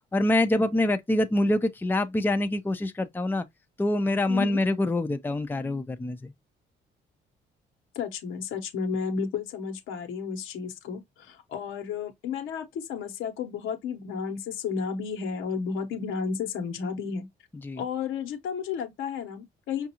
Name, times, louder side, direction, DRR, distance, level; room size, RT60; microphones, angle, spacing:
voice 1, 0.1-3.4 3.8-6.3 17.6-17.8, left 1 dB, 10° left, 0.5 m, -25 dB
voice 2, 4.3-4.6 7.9-17.3 17.8-19.9, left 6 dB, 85° left, 1.0 m, -32 dB
5.2 x 2.4 x 2.9 m
cardioid pair, 90°, 20 cm